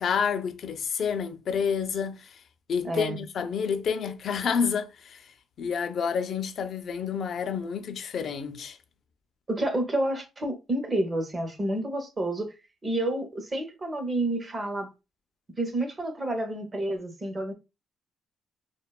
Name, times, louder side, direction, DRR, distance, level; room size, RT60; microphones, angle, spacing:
voice 1, 0.0-2.4 2.7-5.2 5.6-8.8, left 6 dB, 60° left, 0.4 m, -29 dB
voice 2, 2.8-3.2 9.5-12.5 12.8-14.9 15.6-17.5, right 1 dB, 30° right, 0.7 m, -29 dB
2.7 x 2.2 x 2.3 m
cardioid pair, 90°, 0 cm